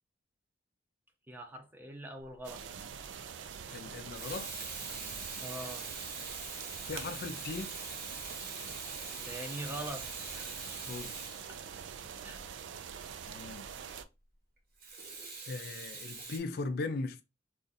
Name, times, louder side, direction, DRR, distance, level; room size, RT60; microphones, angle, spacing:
voice 1, 1.3-2.9 5.4-5.9 9.2-10.1 10.3-10.5 11.5-11.6 12.2-12.5, right 1 dB, 10° right, 0.6 m, -43 dB
Water tap faucet / Sink (filling or washing), 2.3-2.6 3.9-12.1 14.8-16.4, right 4 dB, 50° right, 0.9 m, -43 dB
sound 1, 2.4-14.0, right 7 dB, 80° right, 0.4 m, -45 dB
voice 2, 3.7-4.7 6.9-7.8 10.9-11.2 13.3-13.7 15.5-17.2, left 3 dB, 55° left, 0.4 m, -39 dB
2.5 x 2.4 x 3.9 m
head